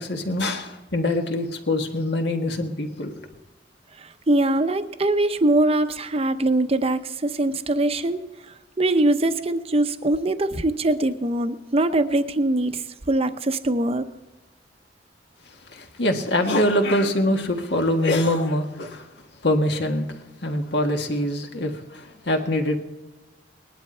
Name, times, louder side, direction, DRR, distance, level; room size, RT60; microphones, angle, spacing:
voice 1, 0.0-3.2 15.7-19.1 19.4-20.1 20.4-22.8, left 1 dB, 65° left, 1.7 m, -24 dB
voice 2, 4.0-8.2 8.8-14.0, right 2 dB, 35° right, 0.8 m, -22 dB
19.5 x 11.5 x 4.4 m
head